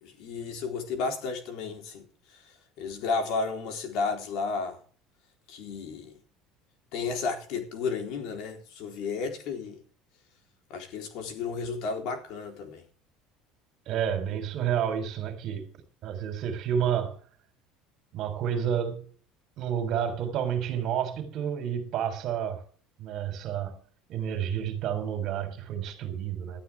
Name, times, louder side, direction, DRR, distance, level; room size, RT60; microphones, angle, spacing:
voice 1, 0.0-2.1 2.8-4.8 5.5-6.1 6.9-9.8 10.7-12.8, left 4 dB, 55° left, 3.8 m, -32 dB
voice 2, 13.9-15.7 16.0-17.2 18.1-19.1 19.6-22.6 23.0-23.8 24.1-26.6, right 9 dB, 40° right, 3.9 m, -30 dB
18.5 x 12.5 x 3.5 m
cardioid pair, 180°, 0 cm